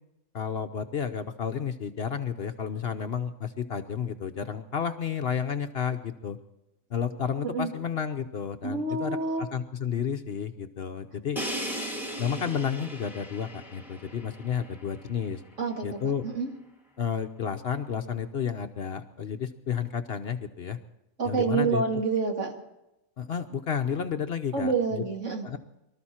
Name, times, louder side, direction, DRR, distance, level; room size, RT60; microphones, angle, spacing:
voice 1, 0.3-6.4 6.9-11.4 12.2-15.4 15.8-16.2 17.0-20.8 21.2-21.8 23.2-25.0 25.4-25.6, left 7 dB, 55° left, 7 dB, 0.9 m, -31 dB
voice 2, 8.6-9.5 15.6-16.5 21.2-22.6 24.5-25.5, right 4 dB, 60° right, 2 dB, 2.4 m, -28 dB
Crash cymbal, 11.4-15.2, right 1 dB, ahead, 2.2 m, -37 dB
24.0 x 13.0 x 4.3 m, 0.91 s
omnidirectional pair, 1.4 m